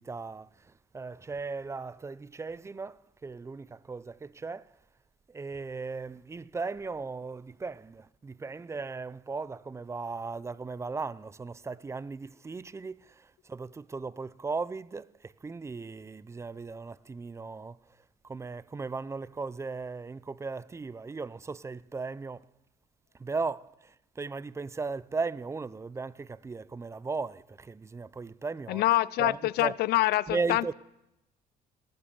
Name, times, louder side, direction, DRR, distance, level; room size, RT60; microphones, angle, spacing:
voice 1, 0.0-4.7 5.3-17.8 18.2-22.5 23.2-28.8 29.2-29.7 30.3-30.7, right 4 dB, 15° right, 0.4 m, -37 dB
voice 2, 28.7-30.7, left 17 dB, 75° left, 0.4 m, -26 dB
18.5 x 7.8 x 7.0 m
cardioid pair, 100°, 17 cm